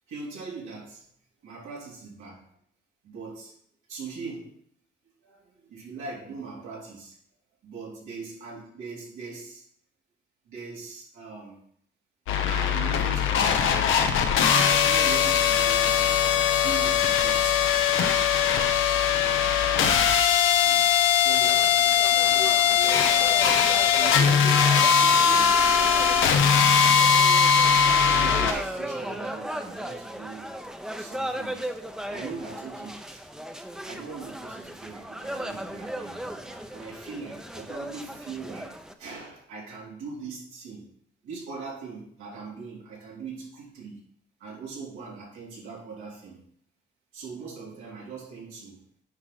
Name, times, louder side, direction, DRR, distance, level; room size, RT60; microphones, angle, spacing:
voice 1, 0.1-1.0 1.4-2.4 3.0-3.5 3.9-4.5 5.2-7.1 7.6-9.6 10.4-11.6 12.5-14.1 14.5-16.2 16.5-17.6 18.1-18.3 20.6-21.6 24.0-26.1 26.4-26.5 27.0-27.2 28.1-30.5 31.0-31.8 32.1-33.2 33.8-38.7 39.0-40.8 41.2-44.0 44.4-46.4 47.1-48.8, right 4 dB, 90° right, -5 dB, 3.5 m, -40 dB
sound 1, 12.3-28.5, left 7 dB, 85° left, 0.9 m, -21 dB
sound 2, 21.4-38.9, right 1 dB, 5° right, 0.7 m, -37 dB
9.5 x 4.9 x 4.0 m, 0.63 s
cardioid pair, 90°, 20 cm